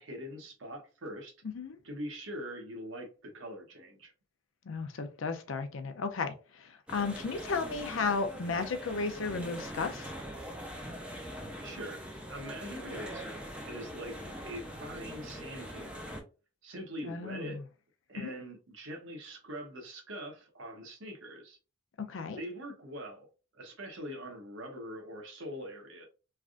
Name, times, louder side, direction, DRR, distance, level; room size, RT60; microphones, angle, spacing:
voice 1, 0.0-1.3 1.8-4.1 11.6-16.1 16.6-17.6 18.1-21.6 22.4-23.3 23.5-26.1, equal, 75° right, 0.9 m, -43 dB
voice 2, 4.7-6.3 6.6-10.1 17.1-17.6 18.2-18.3 22.1-22.4, left 4 dB, 75° left, 0.5 m, -34 dB
sound 1, 6.9-16.2, equal, 5° right, 0.5 m, -43 dB
3.3 x 2.4 x 2.4 m
head